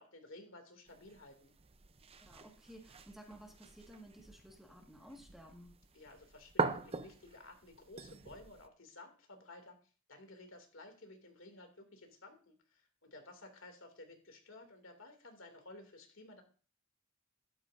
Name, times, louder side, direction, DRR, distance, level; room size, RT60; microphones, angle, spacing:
voice 1, 0.0-1.5 5.9-9.8 10.1-16.4, left 2 dB, 70° left, 4 dB, 2.6 m, -55 dB
sound 1, 0.9-8.7, right 4 dB, 30° right, 0.6 m, -43 dB
voice 2, 2.2-5.8, equal, ahead, 1 dB, 1.7 m, -55 dB
13.0 x 12.0 x 2.6 m, 0.36 s
head